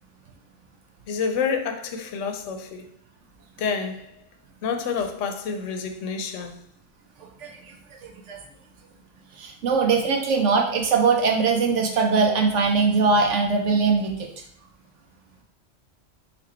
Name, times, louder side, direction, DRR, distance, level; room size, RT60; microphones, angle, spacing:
voice 1, 1.1-2.9 3.6-4.2 4.6-6.6, left 6 dB, 80° left, 1.0 m, -28 dB
voice 2, 7.4-7.7 8.0-8.4 9.4-14.3, right 4 dB, 75° right, 1.0 m, -21 dB
4.3 x 2.5 x 4.2 m
omnidirectional pair, 1.3 m